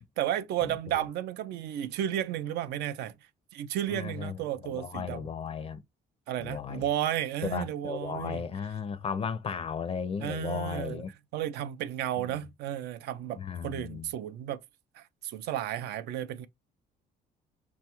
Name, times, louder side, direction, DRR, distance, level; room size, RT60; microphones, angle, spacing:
voice 1, 0.2-3.1 3.5-5.2 6.3-8.4 10.2-11.0 11.3-14.6 15.0-16.5, right 11 dB, 75° right, 0.4 m, -33 dB
voice 2, 3.9-4.4 4.6-5.8 6.4-6.9 7.5-11.1 13.4-14.1, left 6 dB, 35° left, 0.4 m, -35 dB
5.9 x 2.3 x 2.9 m
cardioid pair, 110°, 17 cm